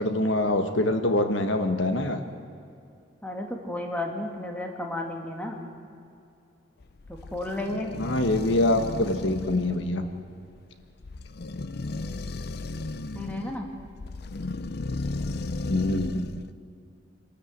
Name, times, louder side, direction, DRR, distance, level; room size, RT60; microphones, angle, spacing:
voice 1, 0.0-2.2 8.0-10.1 15.7-16.2, left 1 dB, 65° left, 7 dB, 1.4 m, -24 dB
voice 2, 3.2-5.7 7.1-7.9 13.1-13.7, left 1 dB, 5° left, 2 dB, 2.2 m, -33 dB
sound 1, 6.8-16.5, left 2 dB, 50° left, 0.6 m, -35 dB
26.0 x 13.5 x 8.0 m, 2.5 s
head